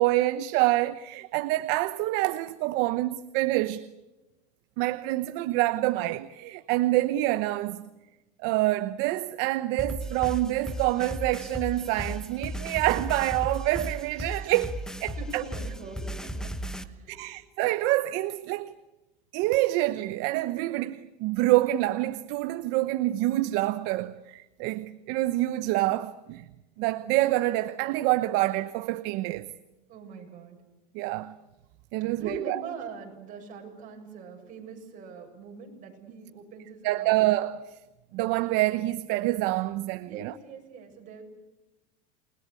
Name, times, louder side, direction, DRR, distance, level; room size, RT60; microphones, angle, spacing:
voice 1, 0.0-3.8 4.8-7.8 8.4-15.4 17.2-18.7 19.3-26.4 26.8-29.5 30.9-31.3 31.9-32.6 36.8-37.6 38.1-40.3, right 17 dB, 60° right, 1.0 m, -26 dB
sound 1, 9.8-16.8, equal, 5° left, 1.1 m, -35 dB
voice 2, 15.2-16.5 16.8-17.2 29.9-30.6 32.1-37.2 40.0-41.2, right 5 dB, 40° right, 7.4 m, -42 dB
28.5 x 21.0 x 8.5 m
supercardioid pair, 145°, 21 cm